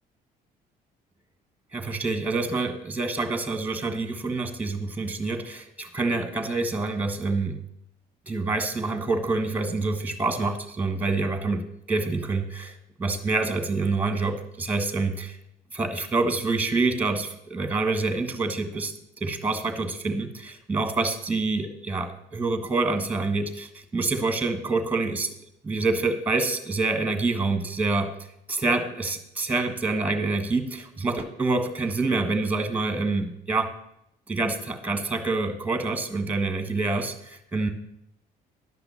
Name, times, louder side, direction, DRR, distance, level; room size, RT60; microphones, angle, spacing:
voice 1, 1.7-7.6 8.3-11.6 11.9-12.7 13.0-15.4 15.7-18.9 19.2-25.3 25.6-28.1 28.5-33.7 34.3-37.7, right 3 dB, 10° right, 8 dB, 1.5 m, -27 dB
11.0 x 5.9 x 7.0 m, 0.78 s
cardioid pair, 110°, 17 cm